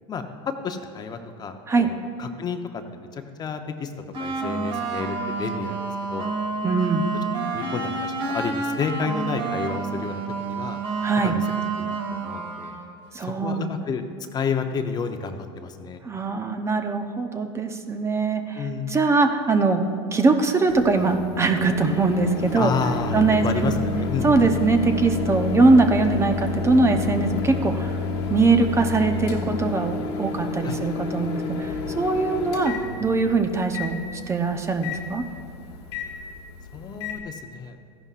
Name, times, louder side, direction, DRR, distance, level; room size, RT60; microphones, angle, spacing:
voice 1, 0.6-3.9 4.2-5.8 6.1-6.3 7.5-10.8 11.2-11.4 11.8-12.8 13.2-14.1 14.3-16.0 18.5-19.0 22.5-24.5 30.6-30.8 36.7-37.8, left 5 dB, 30° left, 6 dB, 0.8 m, -30 dB
sound 1, 4.1-12.9, right 4 dB, 45° right, 1.9 m, -29 dB
voice 2, 6.6-7.1 11.0-11.3 13.1-13.7 16.0-19.8 20.1-22.7 23.1-23.8 24.2-28.0 28.3-32.8 33.0-34.0 34.3-35.2, right 3 dB, 20° right, 6 dB, 0.7 m, -22 dB
Microwave oven, 20.7-37.2, left 4 dB, 80° left, 1.5 m, -30 dB
14.0 x 11.0 x 2.5 m, 2.5 s
supercardioid pair, 105°, 14 cm